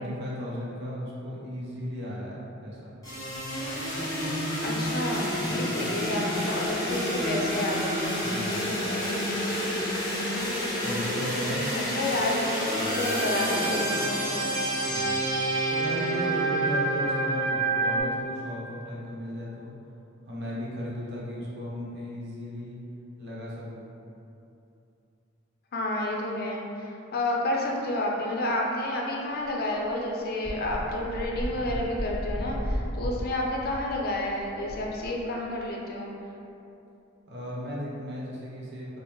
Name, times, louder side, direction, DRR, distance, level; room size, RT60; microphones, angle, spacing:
voice 1, 0.0-2.9 5.4-6.0 8.2-8.7 10.8-11.6 12.8-13.2 14.9-19.7 20.3-22.8 23.2-23.9 37.3-39.0, left 1 dB, 55° right, -6 dB, 0.8 m, -36 dB
sound 1, 3.0-18.0, right 1 dB, 15° left, 1.2 m, -28 dB
voice 2, 4.6-8.0 8.5-9.1 11.7-14.5 25.7-36.1, left 1 dB, 50° left, -1 dB, 0.5 m, -30 dB
sound 2, 29.4-29.5 29.8-29.9 30.4-35.6, equal, ahead, 1.5 m, -34 dB
5.2 x 2.0 x 3.0 m, 2.7 s
head